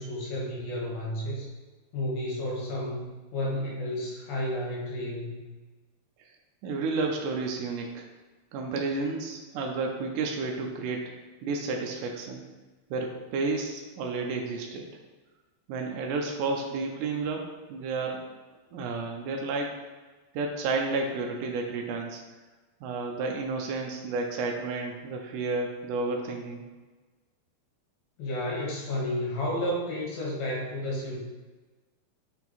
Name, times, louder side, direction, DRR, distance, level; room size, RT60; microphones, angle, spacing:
voice 1, 0.0-1.5 1.9-3.0 3.3-5.4 28.2-31.2, left 1 dB, 70° left, -3 dB, 3.2 m, -31 dB
voice 2, 6.6-8.0 8.5-11.0 11.4-12.5 12.9-14.9 15.7-18.3 18.7-19.8 20.3-22.2 22.8-26.7, right 3 dB, 85° right, 1 dB, 1.8 m, -31 dB
6.1 x 4.5 x 4.1 m, 1.3 s
omnidirectional pair, 4.5 m